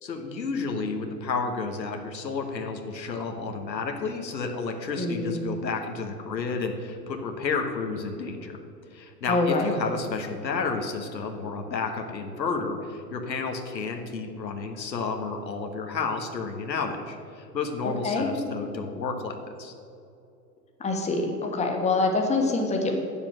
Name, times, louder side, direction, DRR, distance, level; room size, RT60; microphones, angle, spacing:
voice 1, 0.0-8.6 8.9-19.7, left 4 dB, 85° left, 3 dB, 1.3 m, -31 dB
voice 2, 5.0-5.4 9.3-9.7 18.0-18.3 20.8-23.0, left 3 dB, 15° left, 2 dB, 1.3 m, -25 dB
8.6 x 7.3 x 6.1 m, 2.6 s
hypercardioid pair, 105°, 50 cm